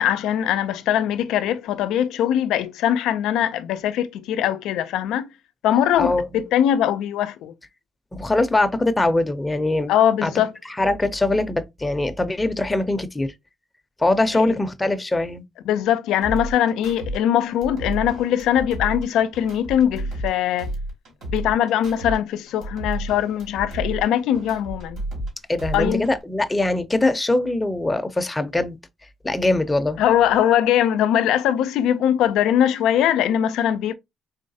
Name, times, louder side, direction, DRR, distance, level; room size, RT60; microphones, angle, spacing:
voice 1, 0.0-5.3 5.6-7.5 9.9-10.5 14.5-14.6 15.7-20.7 21.3-25.0 25.7-26.0 30.0-33.9, left 10 dB, 90° left, 0.4 m, -21 dB
voice 2, 6.0-6.4 8.1-9.9 10.2-10.3 10.8-13.3 14.0-15.4 25.5-28.8 29.2-30.0, left 2 dB, 15° left, 0.6 m, -22 dB
sound 1, 16.2-17.2 17.5-20.3 20.6-22.2 22.5-25.3 25.6-26.2, right 1 dB, 70° right, 2.6 m, -31 dB
3.9 x 3.1 x 2.7 m
cardioid pair, 90°, 0 cm